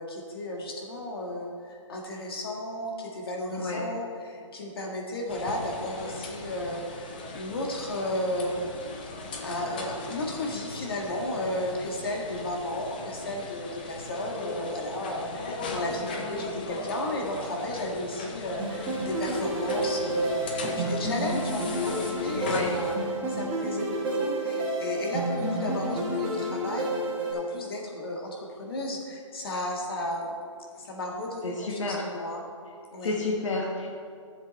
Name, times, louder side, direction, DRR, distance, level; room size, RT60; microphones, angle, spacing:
voice 1, 0.0-8.7 9.4-22.9 23.3-26.9 27.3-30.4 30.8-32.4 32.9-33.2, left 1 dB, 45° left, 0 dB, 1.8 m, -34 dB
voice 2, 3.5-3.9 22.3-22.7 31.4-32.1 33.0-33.9, left 3 dB, 65° left, -1 dB, 1.5 m, -30 dB
sound 1, 5.3-23.0, left 3 dB, 15° left, 0.5 m, -38 dB
sound 2, 18.6-27.3, right 1 dB, 10° right, 1.7 m, -30 dB
13.0 x 7.3 x 4.2 m, 2.3 s
hypercardioid pair, 170°, 17 cm